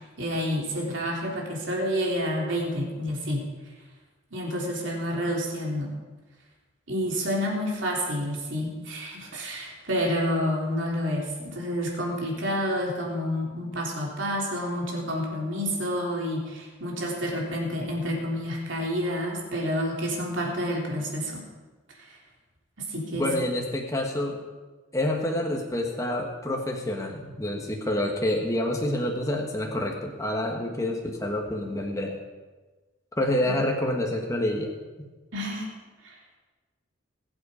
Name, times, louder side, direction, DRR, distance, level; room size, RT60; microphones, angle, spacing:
voice 1, 0.2-3.4 4.3-5.9 6.9-21.4 22.0-22.2 22.8-23.3 35.3-35.7 36.0-36.1, equal, 65° right, -2 dB, 3.4 m, -29 dB
voice 2, 23.2-24.4 24.9-32.2 33.2-34.7, left 1 dB, 15° left, 0 dB, 1.4 m, -27 dB
20.5 x 8.1 x 5.1 m, 1.3 s
head